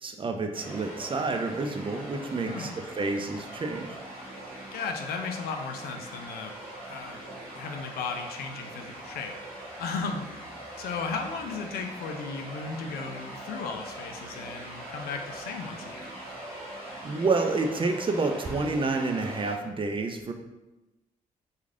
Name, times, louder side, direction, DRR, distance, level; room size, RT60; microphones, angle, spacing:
voice 1, 0.0-4.0 17.0-20.3, right 3 dB, 35° right, 5 dB, 0.4 m, -29 dB
sound 1, 0.5-19.5, right 1 dB, 75° right, 0.9 m, -42 dB
voice 2, 2.2-2.8 4.7-6.5 6.9-7.2 7.5-9.3 9.8-10.3 10.8-16.1, left 5 dB, 70° left, 5 dB, 0.4 m, -35 dB
3.1 x 2.3 x 2.4 m, 1.0 s
hypercardioid pair, 45°, 16 cm